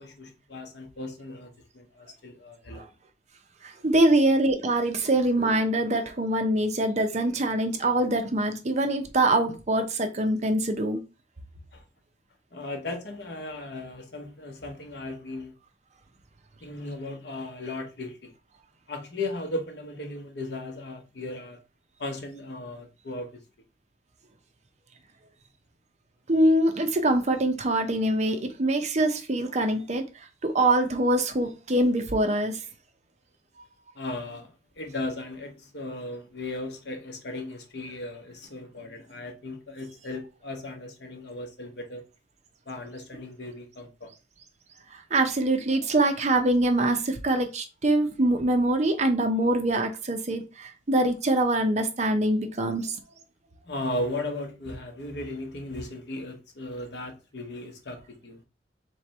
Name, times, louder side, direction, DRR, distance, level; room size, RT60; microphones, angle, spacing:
voice 1, 0.0-2.8 11.7-11.8 12.5-15.5 16.6-18.3 18.9-21.6 22.0-23.4 33.9-42.0 42.7-44.1 53.6-58.4, left 2 dB, 65° left, 1.0 m, -36 dB
voice 2, 3.6-11.0 26.3-30.0 30.4-32.6 44.9-53.0, right 1 dB, 40° right, 0.7 m, -24 dB
3.3 x 3.2 x 4.2 m
head